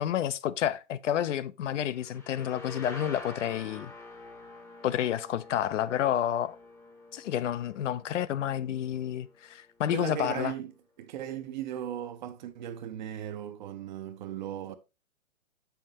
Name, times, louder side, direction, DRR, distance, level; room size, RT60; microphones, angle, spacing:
voice 1, 0.0-3.9 4.8-6.6 7.1-10.5, left 10 dB, 60° left, 0.5 m, -30 dB
sound 1, 1.9-9.5, left 2 dB, 5° left, 0.7 m, -47 dB
voice 2, 9.9-10.7 11.0-14.8, right 11 dB, 35° right, 0.5 m, -37 dB
6.3 x 5.7 x 2.8 m
hypercardioid pair, 130°, 41 cm